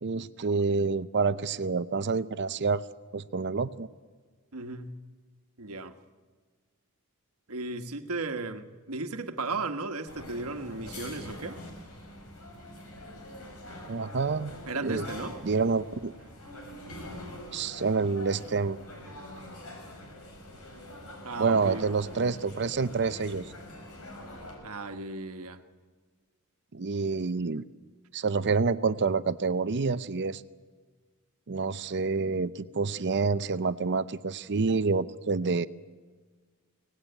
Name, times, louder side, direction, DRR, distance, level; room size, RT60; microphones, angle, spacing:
voice 1, 0.0-2.8 3.1-3.9 13.9-14.5 14.8-15.0 15.4-16.1 17.5-18.8 21.4-23.5 26.7-27.6 28.1-30.4 31.5-35.7, right 4 dB, 50° right, 0.6 m, -28 dB
voice 2, 4.5-5.0 5.6-6.0 7.5-11.6 14.7-15.4 21.2-21.8 24.6-25.6, right 3 dB, 70° right, 1.4 m, -35 dB
sound 1, 10.1-24.5, left 1 dB, 70° left, 6.0 m, -44 dB
24.0 x 18.0 x 9.1 m
head